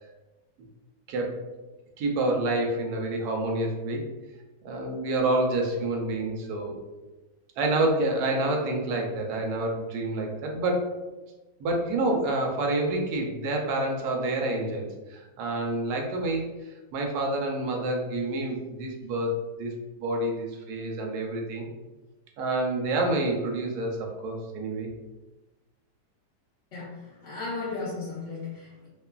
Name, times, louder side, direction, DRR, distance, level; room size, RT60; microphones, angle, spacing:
voice 1, 1.1-1.4 2.0-4.1 4.6-6.8 7.6-11.0 11.6-16.4 16.9-21.7 22.4-24.9, right 2 dB, 70° right, 1 dB, 1.0 m, -28 dB
voice 2, 26.7-28.9, left 3 dB, 55° left, -9 dB, 0.8 m, -35 dB
3.0 x 2.3 x 2.2 m, 1.2 s
omnidirectional pair, 1.9 m